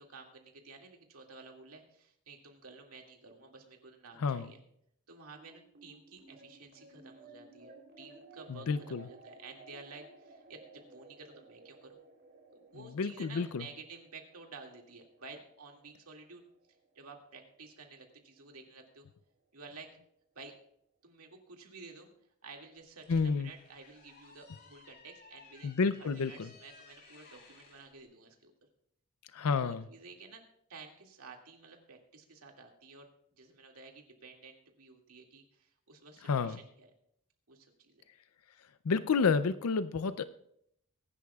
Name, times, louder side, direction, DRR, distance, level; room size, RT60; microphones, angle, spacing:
voice 1, 0.0-4.6 5.1-12.0 12.5-16.5 16.9-19.1 19.5-20.0 20.3-20.5 21.0-22.1 22.4-28.5 29.5-30.4 30.7-33.1 33.4-36.9 37.5-38.1, right 4 dB, 80° right, 2 dB, 2.2 m, -52 dB
voice 2, 4.2-4.5 8.5-9.0 12.8-13.6 23.1-23.5 25.6-26.5 29.3-29.8 36.2-36.6 38.8-40.2, left 5 dB, 75° left, 13 dB, 0.5 m, -30 dB
sound 1, 5.3-18.0, right 2 dB, 50° right, 3.3 m, -57 dB
sound 2, 22.8-27.9, left 4 dB, 50° left, 3.5 m, -58 dB
23.0 x 11.0 x 2.3 m, 0.73 s
head